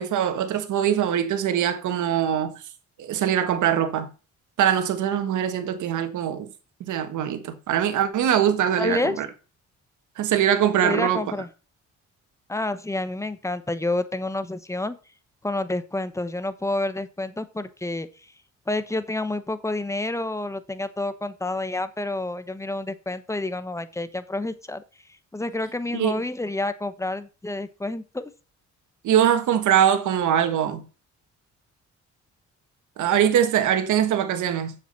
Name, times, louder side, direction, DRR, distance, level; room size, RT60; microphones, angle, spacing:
voice 1, 0.0-2.6 3.0-4.1 4.6-6.5 6.8-9.3 10.2-11.2 25.9-26.2 29.0-30.8 33.0-34.7, right 9 dB, 75° right, 1.5 m, -22 dB
voice 2, 8.8-9.2 10.8-11.5 12.5-15.0 15.4-18.3 18.7-24.8 25.3-28.3, left 2 dB, 10° left, 1.1 m, -29 dB
7.3 x 7.2 x 5.5 m
cardioid pair, 90°, 30 cm